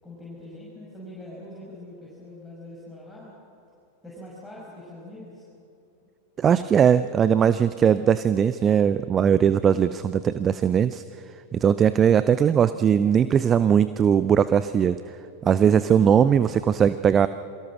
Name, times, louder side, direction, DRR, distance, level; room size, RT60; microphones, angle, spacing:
voice 1, 0.0-3.4 4.0-5.4, left 1 dB, 5° left, -6 dB, 5.8 m, -43 dB
voice 2, 6.4-11.0 11.5-15.0 15.4-17.3, right 8 dB, 25° right, 14 dB, 0.6 m, -20 dB
28.0 x 23.0 x 6.1 m, 2.7 s
figure-of-eight pair, 90°, 0 cm